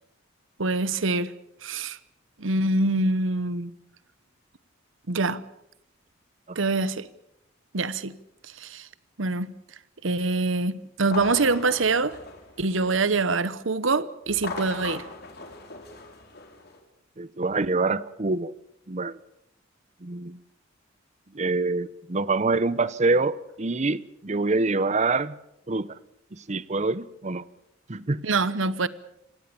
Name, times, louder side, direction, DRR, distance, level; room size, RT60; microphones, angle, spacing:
voice 1, 0.6-1.3 1.6-2.0 2.4-3.7 5.1-5.4 6.5-7.1 7.7-8.1 8.6-8.9 9.2-9.5 10.0-12.2 12.6-15.0 28.2-28.9, right 3 dB, 70° right, 16 dB, 1.0 m, -25 dB
sound 1, 11.0-13.2 14.3-16.8, left 3 dB, 55° left, 4.2 m, -39 dB
voice 2, 17.2-18.5 18.9-19.2 20.0-20.4 21.3-25.4 25.7-26.0 26.3-27.4 27.9-28.2, right 3 dB, 35° right, 18 dB, 0.8 m, -26 dB
26.5 x 18.0 x 7.0 m, 0.80 s
head